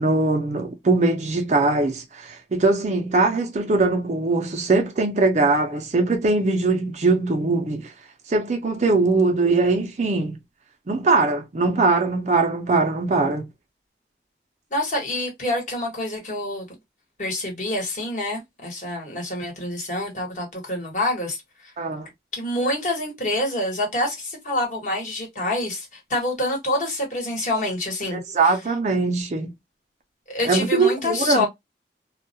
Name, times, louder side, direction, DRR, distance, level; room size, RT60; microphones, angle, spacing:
voice 1, 0.0-7.9 8.3-10.4 10.9-13.5 21.8-22.1 28.1-29.5 30.4-31.5, right 3 dB, 40° right, 0.4 m, -21 dB
voice 2, 14.7-16.7 17.2-21.4 22.3-28.2 30.3-31.5, left 1 dB, 45° left, 1.1 m, -26 dB
2.2 x 2.1 x 2.6 m
head